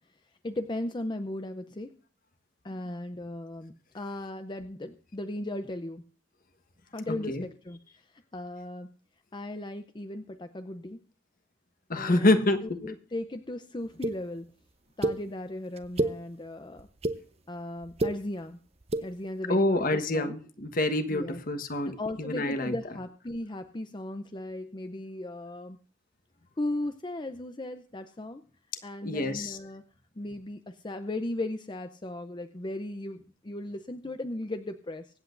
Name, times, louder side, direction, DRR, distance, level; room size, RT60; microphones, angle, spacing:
voice 1, 0.4-1.9 2.6-6.0 6.9-8.0 8.3-8.9 9.3-11.0 11.9-14.5 15.0-16.9 17.5-18.6 19.0-20.4 21.1-21.4 22.0-25.8 26.6-28.4 28.8-29.8 30.2-35.0, left 1 dB, 25° left, 9 dB, 0.6 m, -37 dB
voice 2, 7.1-7.4 11.9-12.8 19.5-22.7 29.0-29.6, left 1 dB, 45° left, 9 dB, 1.3 m, -27 dB
sound 1, 14.0-14.1 15.0-15.2 15.8-16.1 16.8-17.2 17.8-18.1 18.8-19.0, right 1 dB, 35° right, 0.8 m, -27 dB
24.0 x 8.2 x 2.6 m, 0.42 s
head